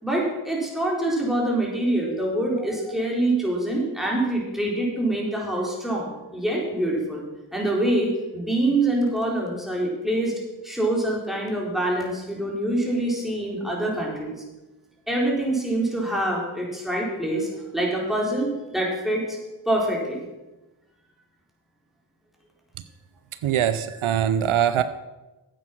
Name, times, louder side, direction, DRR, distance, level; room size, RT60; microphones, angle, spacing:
voice 1, 0.0-10.3 10.6-14.4 15.1-19.4 19.7-20.2, right 1 dB, ahead, -3 dB, 4.3 m, -25 dB
voice 2, 23.4-24.8, right 10 dB, 80° right, 13 dB, 0.6 m, -22 dB
9.3 x 8.5 x 5.9 m, 1.1 s
cardioid pair, 45°, 49 cm